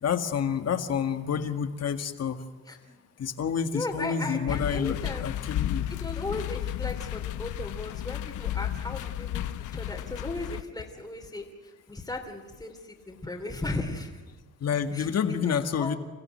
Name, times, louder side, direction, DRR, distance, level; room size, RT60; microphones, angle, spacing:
voice 1, 0.0-2.4 3.2-5.8 14.6-16.0, left 7 dB, 55° left, 7 dB, 1.9 m, -28 dB
voice 2, 3.6-5.3 5.9-9.4 9.7-12.8 13.1-14.2 14.9-16.0, left 2 dB, 10° left, 1 dB, 3.0 m, -36 dB
sound 1, 4.5-10.6, left 12 dB, 80° left, 0.9 m, -33 dB
28.0 x 15.0 x 9.0 m, 1.3 s
cardioid pair, 90°, 30 cm